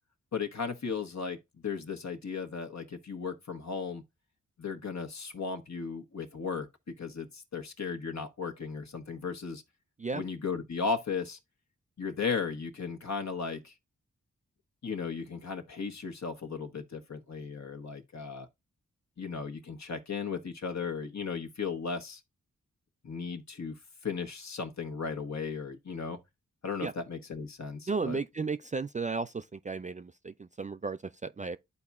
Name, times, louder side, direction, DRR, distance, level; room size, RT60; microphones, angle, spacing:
voice 1, 0.3-1.4 1.6-4.0 4.6-6.7 7.0-9.6 10.1-11.4 12.0-13.7 14.8-18.5 19.2-22.2 23.0-23.8 24.0-26.2 26.6-28.2, left 5 dB, 60° left, 1.2 m, -36 dB
voice 2, 27.9-31.6, right 4 dB, 25° right, 0.3 m, -34 dB
12.0 x 4.1 x 2.3 m
cardioid pair, 45°, 32 cm